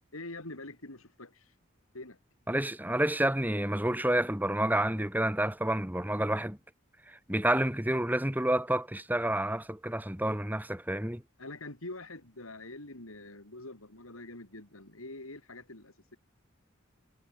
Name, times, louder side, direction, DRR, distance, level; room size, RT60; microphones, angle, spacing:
voice 1, 0.1-1.5 1.9-2.2 11.4-16.2, left 2 dB, 90° left, 5.1 m, -45 dB
voice 2, 2.5-6.6 7.1-11.2, right 1 dB, 10° right, 2.4 m, -29 dB
head